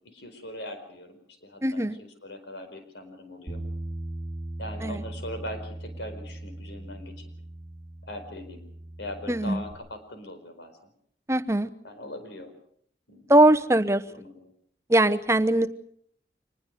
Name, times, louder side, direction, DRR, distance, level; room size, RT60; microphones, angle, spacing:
voice 1, 0.0-3.6 4.6-7.2 8.0-8.6 9.0-10.9 11.8-12.5 13.1-13.3 14.1-14.5 15.5-15.7, left 1 dB, 75° left, 7 dB, 4.7 m, -41 dB
voice 2, 1.6-2.0 4.8-5.0 9.3-9.6 11.3-11.7 13.3-14.0 14.9-15.7, right 1 dB, 15° right, 10 dB, 0.9 m, -21 dB
Bass guitar, 3.5-9.7, right 1 dB, 20° left, 4.8 m, -39 dB
25.5 x 20.0 x 6.6 m, 0.64 s
head